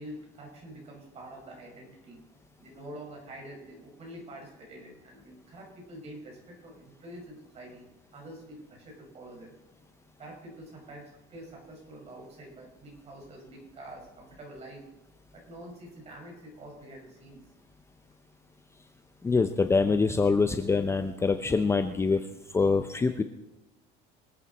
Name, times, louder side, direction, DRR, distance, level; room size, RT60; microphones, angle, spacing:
voice 1, 0.0-2.2 2.6-9.6 10.2-14.9 15.3-17.5, right 1 dB, 35° right, -1 dB, 5.4 m, -46 dB
voice 2, 19.2-22.2 22.5-23.2, left 4 dB, 15° left, 8 dB, 0.6 m, -24 dB
24.5 x 8.7 x 4.2 m, 0.96 s
cardioid pair, 130°, 19 cm